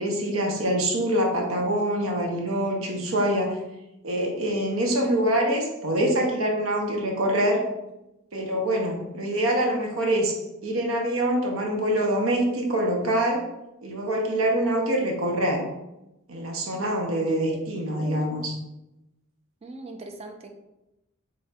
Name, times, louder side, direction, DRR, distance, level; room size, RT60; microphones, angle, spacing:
voice 1, 0.0-3.6 4.0-7.6 8.3-13.4 13.8-15.6 16.3-18.6, right 1 dB, 80° right, 1 dB, 0.8 m, -25 dB
voice 2, 19.6-20.5, right 2 dB, 30° right, 3 dB, 0.4 m, -40 dB
4.0 x 3.4 x 2.3 m, 0.93 s
head